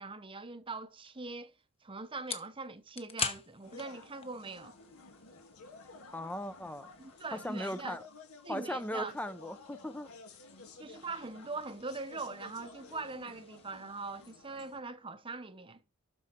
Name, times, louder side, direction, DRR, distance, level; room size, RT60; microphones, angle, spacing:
voice 1, 0.0-1.5 1.8-4.8 7.0-8.0 8.4-9.1 10.8-15.8, right 3 dB, 25° right, 0.9 m, -42 dB
sound 1, 1.0-14.3, left 6 dB, 25° left, 1.1 m, -47 dB
sound 2, 3.6-14.8, left 3 dB, 80° left, 2.7 m, -53 dB
voice 2, 6.1-6.9 7.3-8.0 8.5-10.1, equal, 5° left, 0.6 m, -38 dB
12.5 x 4.8 x 4.4 m
head